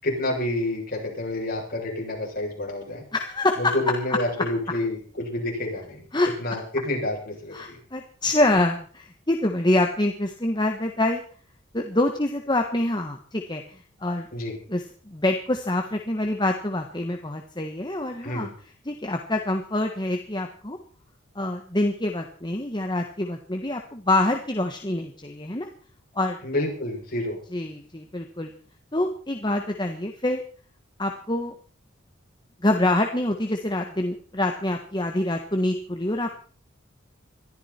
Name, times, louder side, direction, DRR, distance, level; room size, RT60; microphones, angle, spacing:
voice 1, 0.0-3.0 3.6-6.0 6.4-7.8 14.3-14.6 18.2-18.5 26.4-27.4, left 1 dB, 45° left, -1 dB, 7.8 m, -28 dB
voice 2, 3.1-3.7 4.1-4.2 6.1-6.3 7.5-11.2 11.7-14.3 14.7-18.5 18.8-20.8 21.3-25.7 26.1-26.4 27.5-28.5 28.9-30.4 31.0-31.5 32.6-36.4, left 1 dB, 20° left, 4 dB, 1.4 m, -26 dB
22.0 x 14.0 x 4.5 m, 0.43 s
head